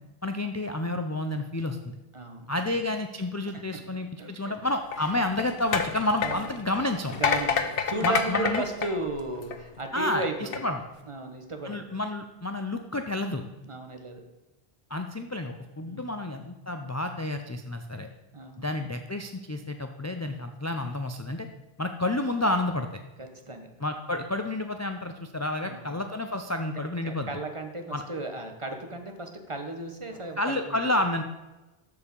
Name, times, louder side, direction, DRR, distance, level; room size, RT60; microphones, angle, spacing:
voice 1, 0.2-1.9 2.5-7.2 8.0-8.6 9.9-10.8 11.6-13.4 14.9-18.1 18.6-21.5 21.8-23.0 23.8-27.3 27.9-28.0 30.4-31.2, left 1 dB, 25° left, 6 dB, 0.4 m, -30 dB
voice 2, 2.1-2.7 4.2-4.5 6.2-6.5 7.2-10.6 11.1-11.8 13.6-14.2 15.8-16.2 18.3-18.6 23.2-23.7 25.6-25.9 27.0-30.9, right 2 dB, 30° right, 5 dB, 1.1 m, -35 dB
sound 1, 4.8-9.8 10.3-10.6, left 6 dB, 70° left, 1.0 m, -29 dB
13.5 x 4.9 x 5.3 m, 1.1 s
omnidirectional pair, 1.0 m